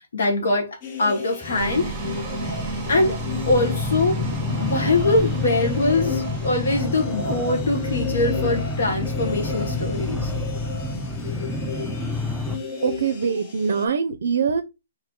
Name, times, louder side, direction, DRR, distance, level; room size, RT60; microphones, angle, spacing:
voice 1, 0.1-1.9 2.9-3.2 3.5-4.2 4.6-10.3, left 2 dB, 80° left, 1.0 m, -23 dB
sound 1, 0.8-13.9, left 4 dB, 35° left, 0.7 m, -34 dB
sound 2, 1.4-12.6, left 3 dB, 5° right, 0.4 m, -29 dB
sound 3, 1.5-6.9, right 3 dB, 20° right, 0.9 m, -32 dB
voice 2, 12.8-14.6, right 6 dB, 70° right, 0.4 m, -23 dB
3.5 x 2.6 x 3.7 m
hypercardioid pair, 160°, 0 cm